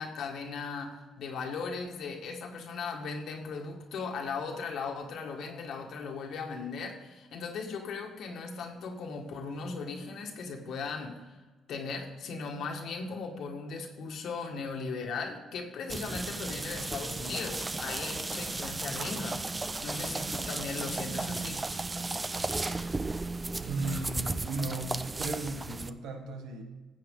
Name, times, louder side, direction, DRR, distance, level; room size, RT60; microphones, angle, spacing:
voice 1, 0.0-11.4 11.7-21.7, left 4 dB, 75° left, 2 dB, 1.7 m, -38 dB
sound 1, 15.9-25.9, right 3 dB, 20° right, 0.5 m, -35 dB
voice 2, 23.6-26.6, right 2 dB, 90° right, 5 dB, 1.6 m, -36 dB
14.5 x 7.8 x 3.8 m, 1.3 s
cardioid pair, 90°, 0 cm